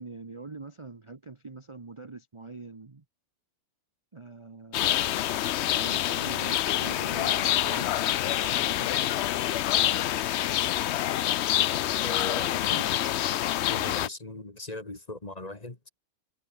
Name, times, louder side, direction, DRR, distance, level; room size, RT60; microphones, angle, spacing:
voice 1, 0.0-3.0 4.1-5.0 5.7-9.5, right 3 dB, 25° right, 1.0 m, -44 dB
sound 1, 4.7-14.1, left 12 dB, 65° left, 0.7 m, -26 dB
voice 2, 12.0-13.1 13.7-15.8, left 2 dB, 25° left, 2.1 m, -39 dB
omnidirectional pair, 1.6 m